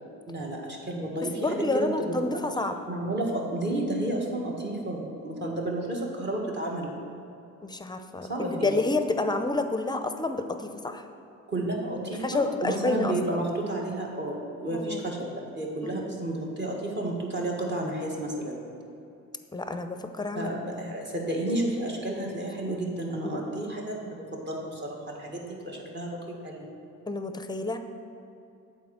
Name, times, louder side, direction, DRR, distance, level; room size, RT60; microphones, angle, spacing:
voice 1, 0.3-2.4 2.9-6.9 8.3-8.8 11.5-18.6 20.3-26.7, right 1 dB, 35° right, -1 dB, 1.7 m, -31 dB
voice 2, 1.2-2.7 7.6-11.0 12.1-13.4 14.7-15.0 15.8-16.3 19.5-20.9 22.7-22.8 23.2-23.4 27.1-27.8, left 2 dB, 15° left, 8 dB, 0.5 m, -30 dB
8.2 x 4.3 x 6.3 m, 2.8 s
cardioid pair, 90°, 30 cm